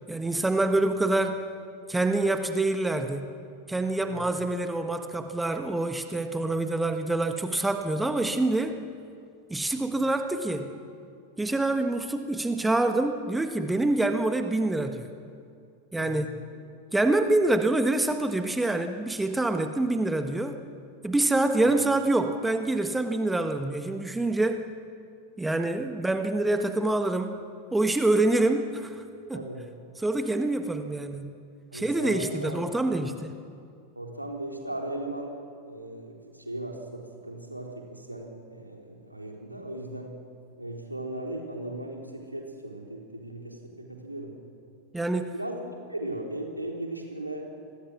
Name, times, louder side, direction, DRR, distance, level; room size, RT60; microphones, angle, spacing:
voice 1, 0.1-1.4 1.9-3.3 3.7-8.8 9.5-10.7 11.4-15.1 15.9-16.3 16.9-20.6 21.0-24.6 25.4-27.4 27.7-29.0 29.3-29.4 30.0-31.3 31.7-33.3 44.9-45.3, right 2 dB, 5° right, 7 dB, 1.5 m, -26 dB
voice 2, 29.3-29.6 31.7-32.6 34.0-35.4 35.7-40.1 40.6-44.3 45.3-45.6 45.9-47.5, right 1 dB, 85° right, 1 dB, 3.8 m, -37 dB
28.5 x 21.5 x 6.3 m, 2.4 s
figure-of-eight pair, 90°, 0 cm